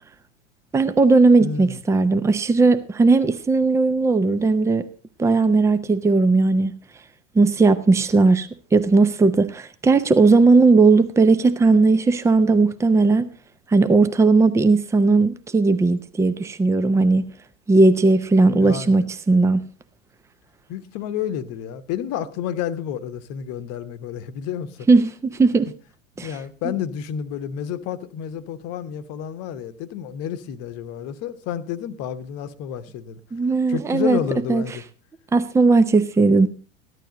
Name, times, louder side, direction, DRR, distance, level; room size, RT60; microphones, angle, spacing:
voice 1, 0.7-4.8 5.2-6.8 7.3-13.3 13.7-17.3 17.7-19.6 24.9-25.7 26.2-26.3 33.3-34.2 34.5-34.6 35.3-36.5, right 3 dB, 5° right, 0.7 m, -17 dB
voice 2, 1.4-1.8 18.6-19.1 20.7-24.9 26.2-33.2 33.7-34.8, left 9 dB, 40° left, 1.1 m, -30 dB
14.5 x 11.5 x 3.9 m
figure-of-eight pair, 85°, 38 cm